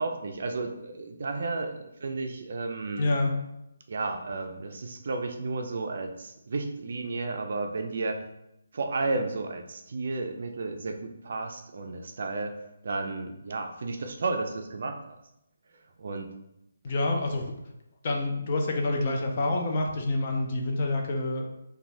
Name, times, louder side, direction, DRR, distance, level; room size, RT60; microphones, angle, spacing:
voice 1, 0.0-3.1 3.9-8.3 8.7-12.6 12.8-15.0 16.0-16.3, right 3 dB, 50° right, 4 dB, 0.3 m, -32 dB
voice 2, 3.0-3.3 16.8-17.5 18.0-21.5, left 2 dB, 30° left, 1 dB, 0.4 m, -27 dB
3.1 x 2.2 x 2.6 m, 0.85 s
hypercardioid pair, 170°, 0 cm